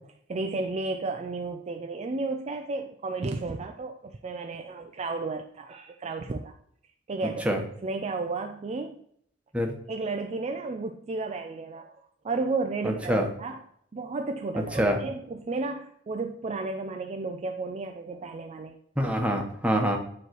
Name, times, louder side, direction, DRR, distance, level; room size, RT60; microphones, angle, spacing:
voice 1, 0.3-6.5 7.1-7.5 7.8-9.0 9.9-11.9 12.2-13.6 13.9-18.8, right 3 dB, 35° right, 5 dB, 0.4 m, -33 dB
voice 2, 12.8-13.3 14.6-15.0 19.0-20.0, equal, 5° right, 2 dB, 1.0 m, -25 dB
9.2 x 3.2 x 4.5 m, 0.67 s
head